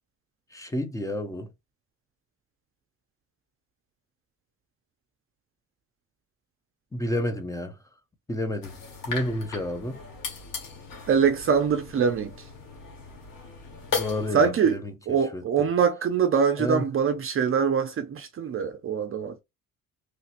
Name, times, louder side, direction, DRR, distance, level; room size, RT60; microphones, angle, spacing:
voice 1, 0.5-1.5 6.9-7.7 8.3-8.8 9.1-10.0 13.9-14.9 15.3-15.4 16.6-16.8, left 1 dB, 10° left, 0.6 m, -30 dB
sound 1, 8.6-14.3, left 5 dB, 85° left, 1.3 m, -37 dB
voice 2, 11.1-12.3 14.3-14.8 15.1-19.4, right 6 dB, 40° right, 0.5 m, -23 dB
3.2 x 2.8 x 2.4 m
cardioid pair, 115°, 33 cm